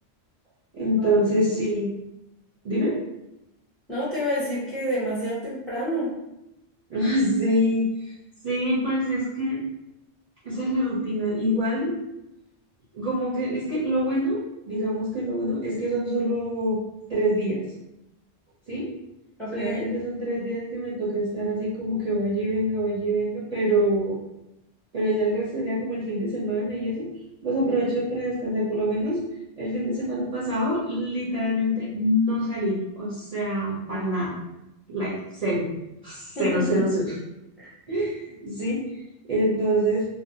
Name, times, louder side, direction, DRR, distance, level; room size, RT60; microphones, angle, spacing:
voice 1, 0.7-1.9 2.6-2.9 6.9-8.1 8.4-9.6 10.4-12.0 12.9-14.4 14.7-16.8 17.1-17.6 18.7-18.9 19.5-24.2 24.9-27.1 27.4-29.2 29.6-34.3 34.9-35.7 36.0-37.1 37.9-40.1, equal, 45° right, -9 dB, 0.6 m, -25 dB
voice 2, 3.9-6.1 19.4-19.9 36.3-36.9 37.6-37.7, equal, ahead, -10 dB, 0.5 m, -28 dB
2.5 x 2.1 x 2.6 m, 0.90 s
omnidirectional pair, 1.2 m